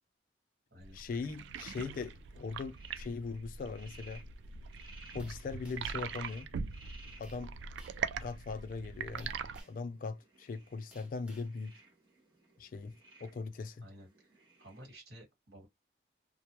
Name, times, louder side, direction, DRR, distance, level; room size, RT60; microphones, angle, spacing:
sound 1, 0.8-9.6, right 6 dB, 80° right, 0.3 m, -42 dB
voice 1, 0.9-4.2 5.1-6.5 7.2-7.5 8.2-9.3 9.7-11.8 12.6-12.9 13.2-13.9, left 4 dB, 50° left, 0.3 m, -40 dB
sound 2, 1.0-15.0, right 3 dB, 25° right, 1.0 m, -60 dB
sound 3, 5.2-6.0 7.2-7.5 7.8-8.1 9.2-9.9 10.9-11.5, right 1 dB, 5° right, 0.6 m, -60 dB
voice 2, 13.8-15.7, equal, 60° right, 1.4 m, -54 dB
2.2 x 2.1 x 2.9 m
head